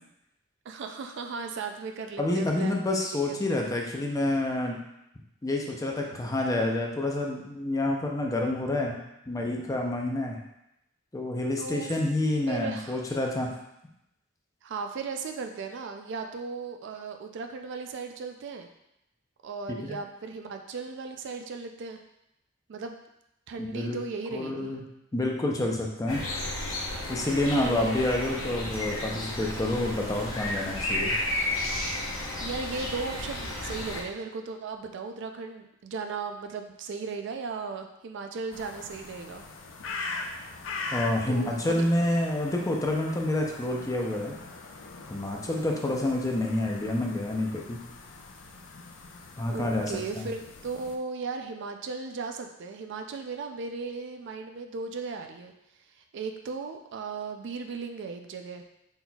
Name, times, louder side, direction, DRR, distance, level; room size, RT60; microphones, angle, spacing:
voice 1, 0.7-3.4 11.6-11.9 12.5-13.0 14.6-18.7 19.4-22.0 22.7-23.0 23.5-24.8 27.6-28.0 32.4-39.4 41.3-41.8 49.5-55.5 56.1-58.6, right 4 dB, 60° right, 5 dB, 0.4 m, -36 dB
voice 2, 2.2-4.8 5.4-9.0 9.3-10.4 11.1-13.5 19.8-20.0 23.6-24.0 24.3-24.8 25.1-26.2 27.1-31.1 40.9-44.3 45.1-47.8 49.4-50.2, left 1 dB, 15° left, 0 dB, 0.5 m, -28 dB
sound 1, 26.1-34.0, left 1 dB, 85° left, 0.9 m, -32 dB
sound 2, 38.5-51.0, left 3 dB, 70° left, 0.5 m, -41 dB
4.1 x 4.0 x 2.3 m, 0.84 s
head